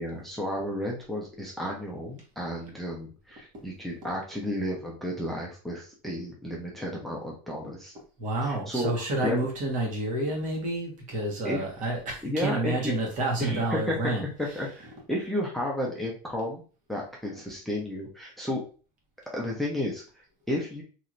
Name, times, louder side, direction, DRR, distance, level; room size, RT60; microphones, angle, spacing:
voice 1, 0.0-7.9 8.4-8.9 9.2-9.5 11.4-11.6 12.2-12.9 13.4-14.1 14.4-16.6 16.9-18.6 19.3-20.8, left 1 dB, ahead, -3 dB, 0.7 m, -32 dB
voice 2, 8.2-14.8 15.2-15.3 17.3-17.4, right 2 dB, 45° right, 0 dB, 1.4 m, -30 dB
3.1 x 2.8 x 2.5 m, 0.37 s
supercardioid pair, 130°, 18 cm